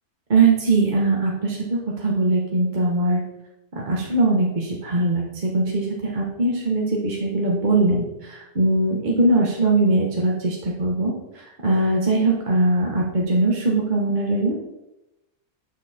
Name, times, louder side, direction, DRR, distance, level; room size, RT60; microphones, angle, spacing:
voice 1, 0.3-3.2 3.7-14.5, right 2 dB, 30° right, -3 dB, 1.4 m, -21 dB
9.0 x 6.4 x 4.3 m, 0.94 s
omnidirectional pair, 1.6 m